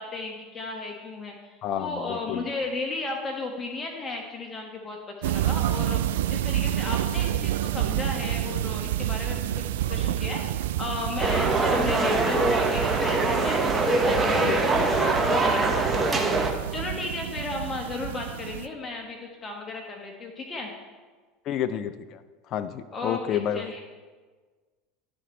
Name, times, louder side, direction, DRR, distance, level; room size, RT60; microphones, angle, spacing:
voice 1, 0.0-6.0 6.3-10.4 10.8-16.4 16.7-20.7 22.9-23.8, left 3 dB, 30° left, 1 dB, 1.2 m, -35 dB
voice 2, 1.6-2.5 14.2-14.7 21.5-22.2 22.5-23.7, left 9 dB, 50° left, 11 dB, 0.4 m, -30 dB
sound 1, 5.2-18.7, right 12 dB, 75° right, 0.3 m, -29 dB
sound 2, 11.2-16.5, right 2 dB, 20° right, 1.1 m, -23 dB
11.5 x 4.3 x 5.3 m, 1.4 s
hypercardioid pair, 85°, 0 cm